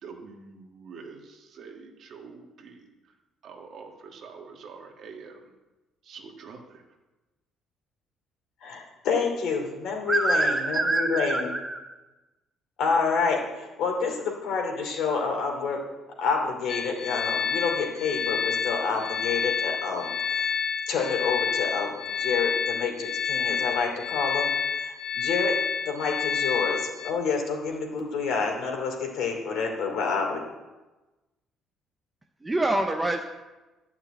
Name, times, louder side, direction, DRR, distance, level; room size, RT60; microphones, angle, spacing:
voice 1, 0.0-2.9 3.4-5.5 6.0-6.8, right 5 dB, 45° right, 2 dB, 1.6 m, -45 dB
voice 2, 8.6-11.5 12.8-15.8 16.2-20.5 20.9-24.5 24.8-25.5 25.8-30.4, left 5 dB, 60° left, 1 dB, 2.9 m, -28 dB
voice 3, 10.1-11.8 32.4-33.3, right 2 dB, 10° right, 4 dB, 0.6 m, -25 dB
sound 1, 16.7-27.1, left 6 dB, 45° left, 1.3 m, -29 dB
12.5 x 5.9 x 9.0 m, 1.1 s
cardioid pair, 175°, 0 cm